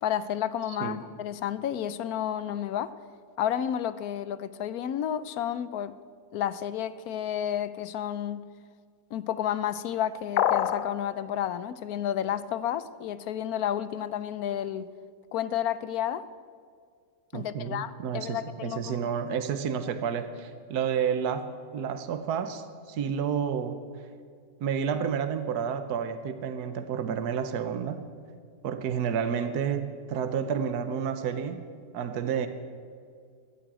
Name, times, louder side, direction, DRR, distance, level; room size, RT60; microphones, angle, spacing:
voice 1, 0.0-2.9 3.4-5.9 6.3-8.5 9.1-14.9 15.3-16.2 17.3-19.1, left 10 dB, 70° left, 15 dB, 1.1 m, -31 dB
sound 1, 10.4-10.9, left 10 dB, 90° left, 1.2 m, -24 dB
voice 2, 17.3-23.8 24.6-28.0 28.6-31.6 31.9-32.5, right 7 dB, 75° right, 10 dB, 1.4 m, -30 dB
14.0 x 10.5 x 8.8 m, 2.1 s
omnidirectional pair, 1.7 m